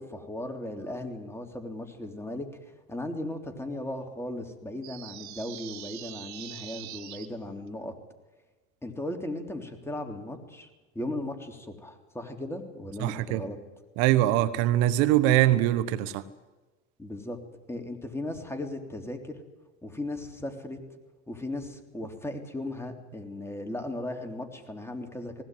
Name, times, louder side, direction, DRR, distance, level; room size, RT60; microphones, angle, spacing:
voice 1, 0.0-2.5 2.9-7.9 8.8-10.7 10.9-13.6 17.0-17.4 17.7-19.4 19.8-20.8 21.3-25.4, left 1 dB, 5° left, 4 dB, 3.4 m, -37 dB
sound 1, 4.8-7.3, right 13 dB, 55° right, 2.4 m, -43 dB
voice 2, 13.0-13.4 14.0-16.2, right 14 dB, 75° right, 14 dB, 1.2 m, -23 dB
19.5 x 17.0 x 9.2 m, 1.2 s
supercardioid pair, 110°, 34 cm